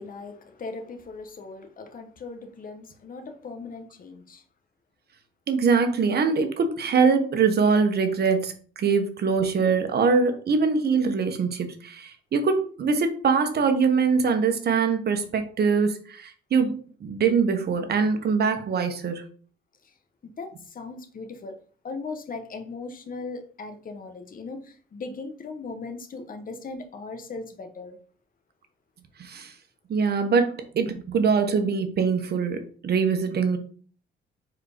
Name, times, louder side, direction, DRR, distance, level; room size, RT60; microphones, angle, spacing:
voice 1, 0.0-4.4 19.8-19.9 20.2-21.6 21.8-28.0, left 3 dB, 45° left, 1.2 m, -38 dB
voice 2, 5.5-19.3 29.2-29.5 29.9-33.6, right 5 dB, 55° right, 1.2 m, -23 dB
4.7 x 4.4 x 5.1 m
cardioid pair, 90°, 20 cm